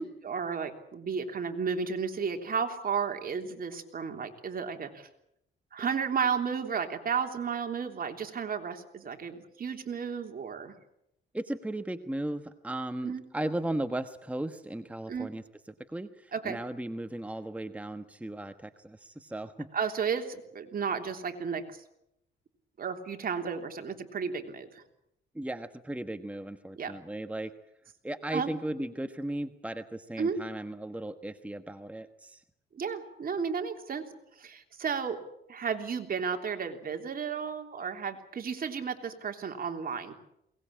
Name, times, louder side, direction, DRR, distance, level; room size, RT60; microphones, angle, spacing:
voice 1, 0.0-5.1 5.7-10.8 13.0-13.2 15.1-15.3 16.3-16.6 19.7-21.8 22.8-24.8 26.8-26.9 28.3-28.5 30.2-30.4 32.7-34.0 34.4-35.2 35.5-40.1, right 6 dB, 45° right, 5 dB, 3.3 m, -33 dB
voice 2, 11.3-15.4 15.9-19.7 25.3-27.5 28.0-32.4, right 1 dB, 5° right, 9 dB, 1.2 m, -36 dB
22.0 x 19.5 x 8.7 m, 0.79 s
cardioid pair, 90°, 20 cm